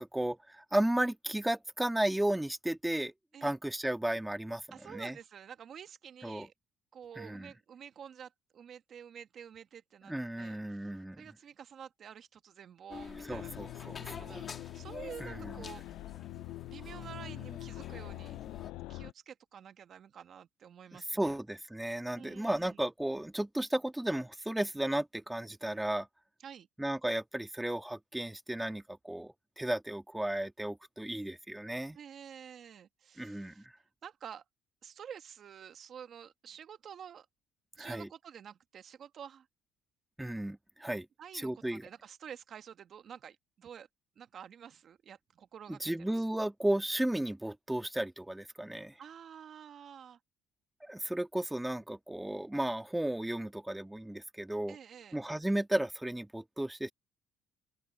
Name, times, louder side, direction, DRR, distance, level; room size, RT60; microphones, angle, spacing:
voice 1, 0.0-3.1 3.4-5.2 6.2-6.5 7.2-7.5 10.1-11.3 13.2-14.4 15.2-15.6 20.9-26.1 26.8-32.0 33.2-33.7 37.8-38.1 40.2-41.1 41.3-41.9 45.7-49.0 50.8-54.8 55.1-56.9, right 1 dB, 5° right, 1.7 m, -34 dB
voice 2, 4.7-6.5 6.9-10.9 11.2-13.5 13.8-16.0 16.7-18.4 18.9-21.4 22.1-22.8 26.4-26.7 31.9-33.7 34.0-34.4 34.8-37.3 37.8-39.5 41.2-43.9 44.2-46.2 49.0-50.2 54.7-55.2, right 8 dB, 45° right, 1.7 m, -49 dB
sound 1, 12.9-18.7, left 6 dB, 35° left, 2.9 m, -48 dB
sound 2, 13.3-19.1, left 18 dB, 75° left, 0.5 m, -44 dB
open air
cardioid pair, 110°, 0 cm